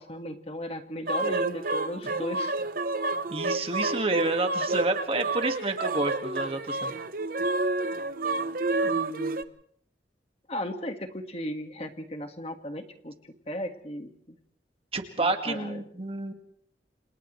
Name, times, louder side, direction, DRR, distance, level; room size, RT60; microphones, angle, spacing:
voice 1, 0.0-2.6 8.8-9.4 10.5-13.2 13.5-14.4 15.2-15.8, left 1 dB, 35° left, 6 dB, 1.8 m, -36 dB
sound 1, 1.1-9.4, right 2 dB, 50° right, 0.9 m, -29 dB
voice 2, 3.3-6.9 14.9-16.3, right 2 dB, 35° right, 6 dB, 1.9 m, -29 dB
29.0 x 28.0 x 3.3 m, 0.63 s
head